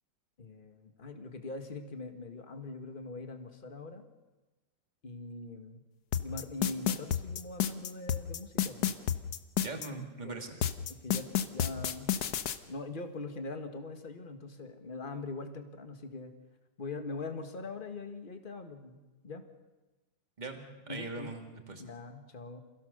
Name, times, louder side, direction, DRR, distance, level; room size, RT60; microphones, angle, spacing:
voice 1, 0.4-4.0 5.0-5.8 6.2-9.0 10.2-10.4 10.9-12.1 12.7-16.3 16.8-19.4 20.9-21.3 21.8-22.6, left 3 dB, 30° left, 6 dB, 1.8 m, -42 dB
sound 1, 6.1-9.9 10.6-12.6, left 9 dB, 60° left, 1.4 m, -30 dB
voice 2, 9.6-10.6 20.4-21.8, right 3 dB, 25° right, 4 dB, 2.5 m, -41 dB
28.0 x 16.5 x 6.7 m, 1.1 s
omnidirectional pair, 2.0 m